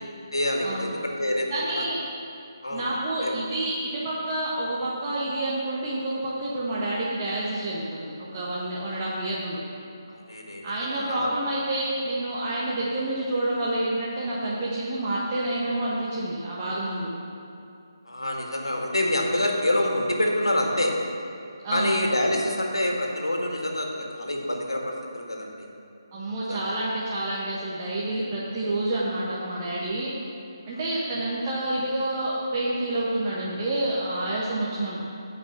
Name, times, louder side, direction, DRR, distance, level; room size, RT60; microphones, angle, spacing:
voice 1, 0.3-1.8 2.6-2.9 3.2-3.3 10.1-11.3 18.1-20.9 21.7-25.7 26.5-26.8, left 1 dB, 80° left, 0 dB, 1.9 m, -27 dB
voice 2, 1.5-2.0 2.7-9.6 10.6-17.1 21.6-22.0 26.1-30.1 30.7-35.0, right 1 dB, 25° right, -7 dB, 1.3 m, -28 dB
15.0 x 5.4 x 5.8 m, 2.6 s
figure-of-eight pair, 150°, 2 cm